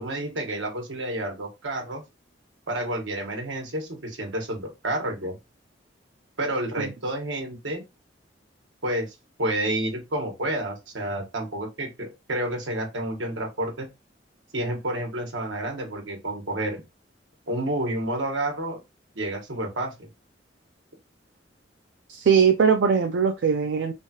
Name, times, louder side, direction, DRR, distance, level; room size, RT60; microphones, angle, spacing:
voice 1, 0.0-2.0 2.7-5.4 6.4-7.8 8.8-13.9 14.5-16.8 17.5-18.8 19.1-20.1, right 1 dB, 90° right, 1.2 m, -30 dB
voice 2, 22.1-23.9, right 6 dB, 70° right, 0.4 m, -20 dB
3.1 x 2.3 x 2.8 m
head